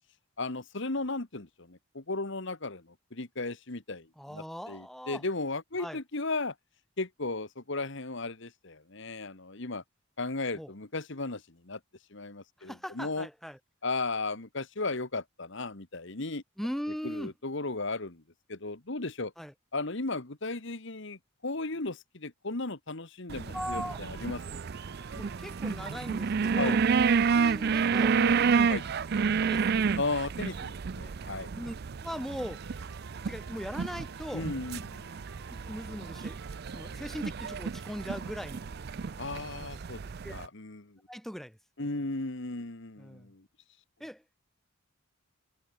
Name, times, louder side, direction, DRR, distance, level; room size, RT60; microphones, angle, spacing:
voice 1, 0.4-6.5 7.0-9.8 10.2-11.8 12.1-13.3 13.8-16.4 17.0-18.2 18.5-19.3 19.7-24.4 26.6-26.8 28.1-28.8 30.0-31.5 34.3-35.1 39.2-40.0 40.3-41.0 41.8-43.4, left 3 dB, 55° left, 1.6 m, -35 dB
voice 2, 4.2-5.2 5.8-6.0 10.5-10.7 12.6-13.6 16.6-17.3 19.4-19.5 23.5-24.0 25.1-26.8 27.3-28.2 29.4-29.9 31.5-31.8 32.0-32.6 33.3-34.5 35.5-36.4 36.7-38.7 39.5-39.7 40.2-40.4 41.1-41.9 43.0-43.3 44.0-44.2, equal, ahead, 2.2 m, -39 dB
sound 1, 23.3-40.5, right 5 dB, 45° right, 0.4 m, -30 dB
sound 2, 23.9-29.9 30.4-39.4, right 3 dB, 75° right, 4.4 m, -52 dB
head